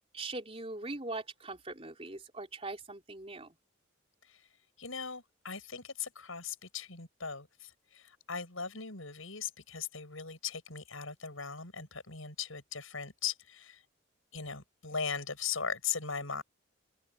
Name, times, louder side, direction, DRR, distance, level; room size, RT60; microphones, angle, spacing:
voice 1, 0.1-3.5, right 2 dB, 30° right, 3.8 m, -41 dB
voice 2, 4.8-13.8 14.3-16.4, left 6 dB, 85° left, 7.3 m, -39 dB
open air
head